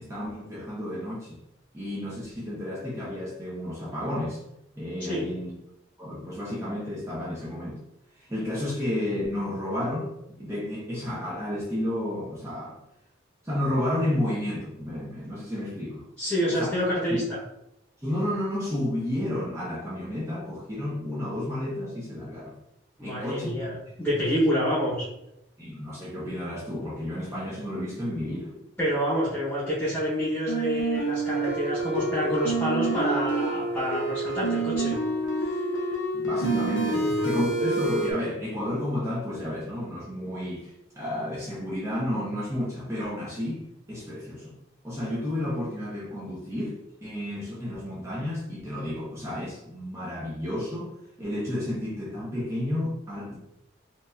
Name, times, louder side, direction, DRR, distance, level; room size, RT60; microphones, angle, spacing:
voice 1, 0.0-1.4 1.7-4.4 4.8-5.6 6.0-7.8 8.2-10.1 10.4-12.8 13.4-16.0 16.5-16.7 17.1-17.2 18.0-22.6 23.0-23.5 25.6-28.5 36.1-43.6 43.9-44.5 44.8-50.9 51.2-53.4, left 1 dB, 15° right, -8 dB, 0.9 m, -31 dB
voice 2, 16.2-17.4 23.0-25.1 28.8-35.0, equal, 10° left, -10 dB, 1.2 m, -27 dB
sound 1, 30.5-38.1, right 2 dB, 70° left, 0.8 m, -27 dB
4.4 x 2.7 x 2.6 m, 0.84 s
head